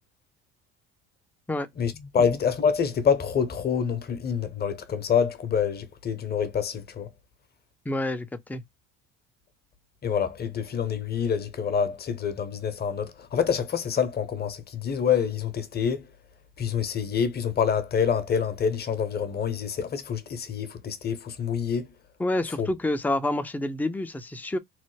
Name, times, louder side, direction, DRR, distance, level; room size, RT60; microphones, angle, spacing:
voice 1, 1.8-7.1 10.0-16.1 16.6-21.9 22.6-22.7, left 7 dB, 35° left, 0.8 m, -26 dB
voice 2, 7.9-8.6 22.2-24.6, left 1 dB, 5° left, 0.5 m, -28 dB
3.1 x 2.0 x 3.2 m
supercardioid pair, 95°, 30 cm